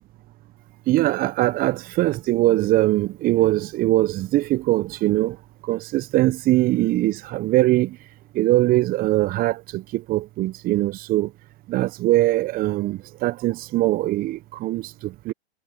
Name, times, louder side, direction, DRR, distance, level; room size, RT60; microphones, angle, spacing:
voice 1, 0.9-5.4 5.6-8.0 8.3-11.3 11.7-15.3, right 17 dB, 25° right, 1.1 m, -22 dB
figure-of-eight pair, 110°, 33 cm